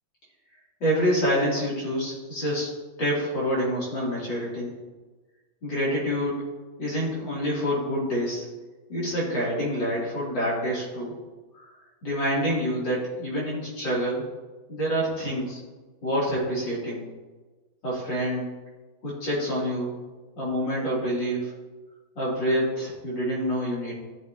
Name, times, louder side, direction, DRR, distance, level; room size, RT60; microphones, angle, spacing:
voice 1, 0.8-2.7 3.0-4.7 5.6-6.4 6.8-8.5 8.9-11.2 11.6-11.7 12.0-14.3 14.7-15.6 16.0-17.0 17.8-18.5 19.0-19.9 20.4-21.5 22.2-23.9, equal, 60° left, -7 dB, 4.2 m, -27 dB
13.5 x 7.1 x 3.1 m, 1.2 s
omnidirectional pair, 2.2 m